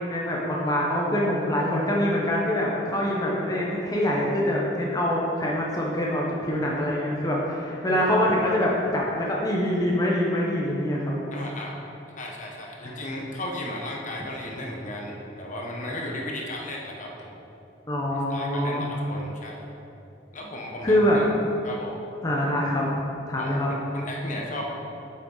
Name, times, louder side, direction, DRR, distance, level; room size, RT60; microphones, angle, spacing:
voice 1, 0.1-11.2 12.8-12.9 17.9-18.8 20.8-21.2 22.2-22.9 23.3-23.7, left 1 dB, 20° left, -4 dB, 0.9 m, -24 dB
voice 2, 11.3-17.3 18.1-19.8 20.3-21.2 21.6-22.0 23.4-24.6, left 1 dB, 45° left, -1 dB, 1.1 m, -35 dB
8.6 x 6.6 x 3.9 m, 2.7 s
head